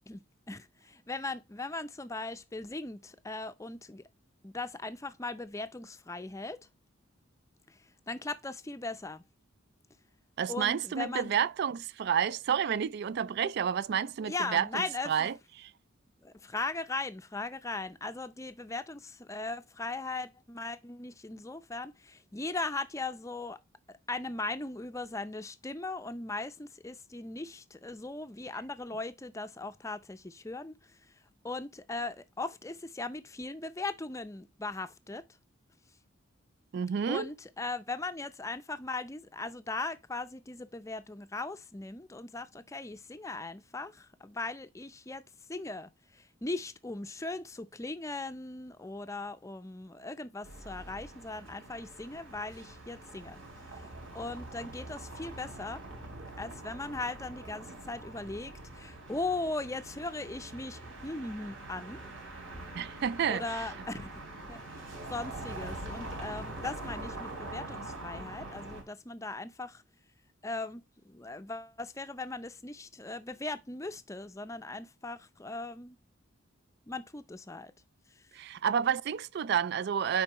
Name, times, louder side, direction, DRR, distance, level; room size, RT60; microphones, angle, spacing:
voice 1, 0.1-4.0 4.4-6.7 7.7-9.2 10.5-11.3 14.2-15.3 16.2-23.6 23.9-31.0 31.4-35.2 37.1-45.2 45.5-53.4 53.7-53.9 54.1-55.8 56.4-62.0 63.3-64.2 64.5-69.8 70.4-76.0 76.9-77.7 78.1-78.2, left 3 dB, 15° left, 0.5 m, -39 dB
voice 2, 10.4-15.7 36.7-37.3 62.7-63.4 78.3-80.2, right 8 dB, 55° right, 0.3 m, -30 dB
sound 1, 50.4-68.8, right 2 dB, 75° right, 3.2 m, -44 dB
9.9 x 4.0 x 2.9 m
head